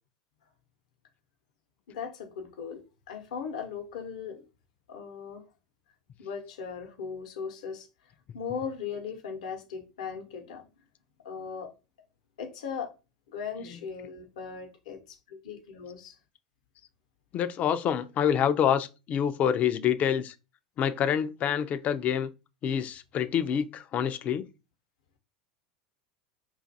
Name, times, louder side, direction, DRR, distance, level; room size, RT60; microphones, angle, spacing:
voice 1, 1.9-2.8 3.1-4.4 4.9-5.4 6.2-7.9 8.3-10.7 11.2-11.7 12.4-12.9 13.3-16.1, left 6 dB, 70° left, 0.8 m, -38 dB
voice 2, 17.3-20.3 20.8-22.3 22.6-24.4, left 8 dB, 40° left, 0.4 m, -27 dB
2.5 x 2.4 x 4.0 m
hypercardioid pair, 80°, 4 cm